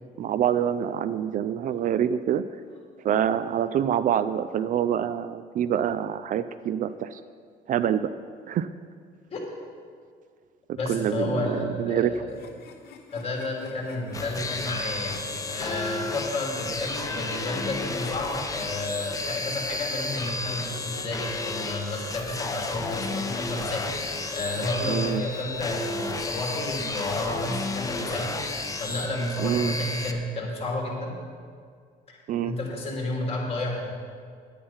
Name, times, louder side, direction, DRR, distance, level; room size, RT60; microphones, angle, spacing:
voice 1, 0.2-2.4 3.0-7.2 7.7-8.1 8.5-8.7 10.9-12.1 24.9-25.2 29.4-29.7 32.3-32.5, right 9 dB, 50° right, 13 dB, 0.4 m, -26 dB
voice 2, 10.7-12.4 13.1-28.3 28.8-31.1 32.1-33.9, left 2 dB, 35° left, -1 dB, 2.9 m, -31 dB
sound 1, 12.3-26.6, left 6 dB, 70° left, 1.2 m, -47 dB
sound 2, 14.1-30.1, left 3 dB, 20° left, 0.8 m, -32 dB
10.0 x 8.7 x 5.6 m, 2.1 s
cardioid pair, 110°, 17 cm